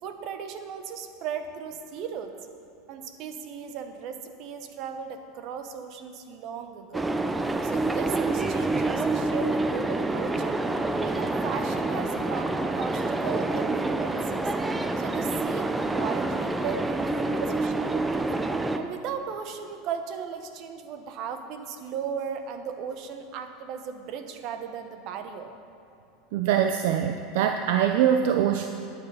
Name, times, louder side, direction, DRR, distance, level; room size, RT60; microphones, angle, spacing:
voice 1, 0.0-2.5 2.9-7.1 7.6-10.6 11.0-14.5 15.0-18.3 18.8-25.5, right 7 dB, 50° right, 7 dB, 1.1 m, -36 dB
sound 1, 6.9-18.8, right 2 dB, 10° right, 0.6 m, -27 dB
voice 2, 26.3-28.7, right 9 dB, 70° right, 6 dB, 0.5 m, -23 dB
12.0 x 9.0 x 5.6 m, 2.7 s
supercardioid pair, 125°, 0 cm